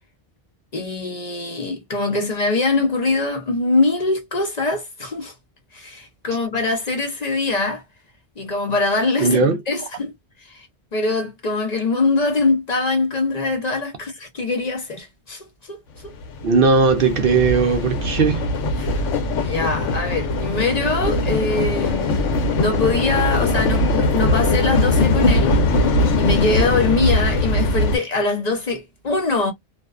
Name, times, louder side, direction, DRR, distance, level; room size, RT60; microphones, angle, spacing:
voice 1, 0.7-5.3 5.7-7.8 8.4-9.4 9.7-10.1 10.5-10.7 10.9-16.1 18.8-19.1 19.4-22.3 22.5-25.6 25.9-29.5, left 3 dB, 45° left, 0.6 m, -23 dB
voice 2, 9.2-9.6 16.4-18.5, right 4 dB, 60° right, 0.6 m, -17 dB
sound 1, 16.1-28.0, left 2 dB, 85° left, 1.0 m, -20 dB
2.5 x 2.2 x 2.2 m
omnidirectional pair, 1.2 m